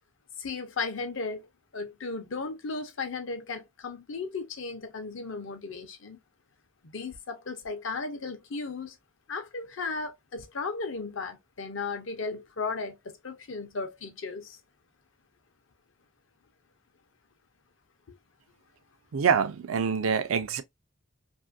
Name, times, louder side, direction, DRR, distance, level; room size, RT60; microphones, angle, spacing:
voice 1, 0.4-1.5 1.7-6.2 6.8-9.0 9.3-14.6, left 4 dB, 65° left, 0.6 m, -35 dB
voice 2, 19.1-20.6, right 6 dB, 85° right, 0.4 m, -25 dB
2.5 x 2.5 x 2.5 m
head